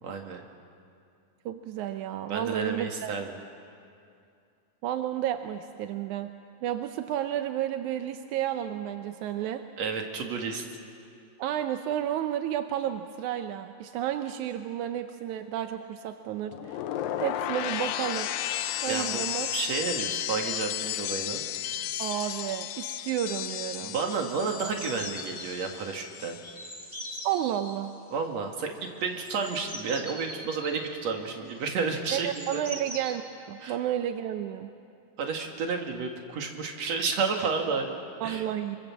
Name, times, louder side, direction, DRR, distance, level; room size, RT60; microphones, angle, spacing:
voice 1, 0.0-0.4 2.3-3.4 9.8-10.7 18.9-19.2 19.5-21.4 23.8-26.4 28.1-28.7 29.0-32.6 33.6-33.8 35.2-38.5, right 5 dB, 50° right, 3 dB, 3.0 m, -31 dB
voice 2, 1.5-3.2 4.8-6.3 6.6-9.6 11.4-16.8 17.2-18.3 18.8-19.5 22.0-24.0 27.2-27.9 32.1-34.7 38.2-38.8, right 11 dB, 75° right, 7 dB, 1.9 m, -31 dB
sound 1, 16.5-26.6 26.9-27.3, left 12 dB, 80° left, 2.5 m, -34 dB
sound 2, 21.8-21.9 22.1-22.5 22.8-23.1 23.4-25.7 26.4-27.8 28.8-33.1, equal, 15° right, 1.4 m, -43 dB
26.5 x 24.5 x 7.4 m, 2.4 s
omnidirectional pair, 4.2 m